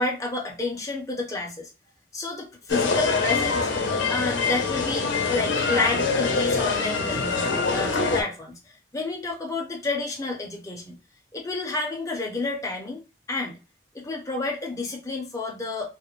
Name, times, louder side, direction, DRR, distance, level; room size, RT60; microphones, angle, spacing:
voice 1, 0.0-1.7 2.1-3.7 4.1-11.0 11.3-13.0 13.3-13.6 13.9-15.9, left 3 dB, 15° left, -1 dB, 0.5 m, -30 dB
sound 1, 2.7-8.2, left 4 dB, 80° left, 0.6 m, -24 dB
2.3 x 2.1 x 3.0 m, 0.31 s
head